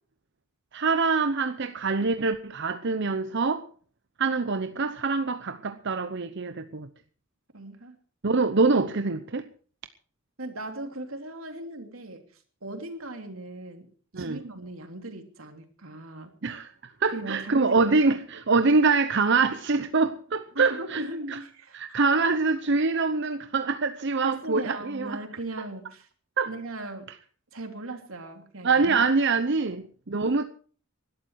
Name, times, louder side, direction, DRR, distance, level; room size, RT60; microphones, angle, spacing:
voice 1, 0.7-3.7 4.2-6.9 8.2-9.4 14.1-14.4 16.4-16.7 17.0-21.0 21.7-25.2 26.4-26.5 28.6-30.4, right 4 dB, 60° right, 0.8 m, -24 dB
voice 2, 7.5-8.0 10.4-12.2 12.6-13.9 14.2-16.3 17.1-18.0 20.5-22.4 24.2-26.1 26.4-27.1 27.5-29.0 30.2-30.4, right 2 dB, 85° right, 3.1 m, -38 dB
20.0 x 12.0 x 4.7 m
head